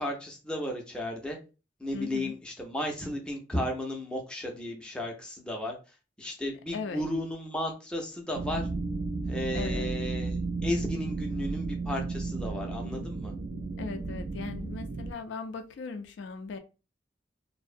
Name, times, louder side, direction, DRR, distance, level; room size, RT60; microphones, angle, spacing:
voice 1, 0.0-1.4 1.8-8.7 9.3-13.3, left 1 dB, 5° left, 0.4 m, -34 dB
voice 2, 1.9-2.3 6.7-7.0 9.5-9.9 13.8-16.6, left 4 dB, 65° left, 0.3 m, -38 dB
sound 1, 8.3-15.1, right 3 dB, 55° right, 0.3 m, -33 dB
2.5 x 2.0 x 2.4 m
head